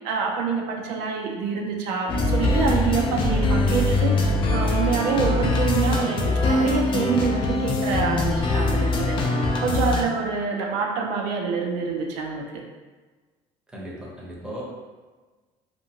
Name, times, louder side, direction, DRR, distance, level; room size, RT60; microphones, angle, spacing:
voice 1, 0.0-12.6, right 5 dB, 80° right, 0 dB, 0.5 m, -26 dB
sound 1, 2.1-10.0, left 2 dB, 40° left, 0.4 m, -22 dB
voice 2, 13.7-14.6, right 1 dB, 5° right, -5 dB, 0.7 m, -37 dB
2.5 x 2.5 x 2.8 m, 1.3 s
cardioid pair, 135°, 13 cm